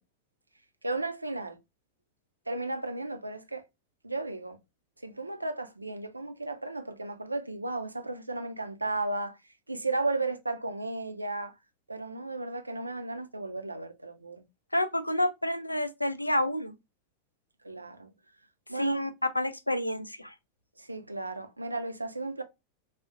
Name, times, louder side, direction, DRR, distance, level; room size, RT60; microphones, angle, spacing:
voice 1, 0.8-1.6 2.5-3.6 4.0-4.6 5.0-9.4 9.7-11.5 11.9-14.4 17.6-18.1 18.7-19.0 20.8-22.4, right 2 dB, 85° right, 0.3 m, -34 dB
voice 2, 14.7-16.7 18.7-20.3, left 1 dB, 85° left, 0.3 m, -29 dB
3.5 x 2.0 x 2.4 m
figure-of-eight pair, 90°, 0 cm